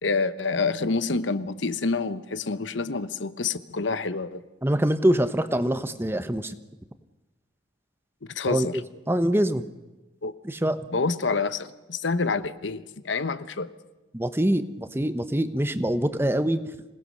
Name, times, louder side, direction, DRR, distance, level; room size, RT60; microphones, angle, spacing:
voice 1, 0.0-4.4 8.3-8.8 10.2-10.3 10.9-13.7, left 4 dB, 80° left, 13 dB, 0.9 m, -27 dB
voice 2, 4.6-6.6 8.5-8.8 9.1-9.6 10.4-10.8 14.1-16.6, right 1 dB, 15° right, 11 dB, 0.9 m, -24 dB
26.5 x 18.0 x 6.5 m, 1.1 s
head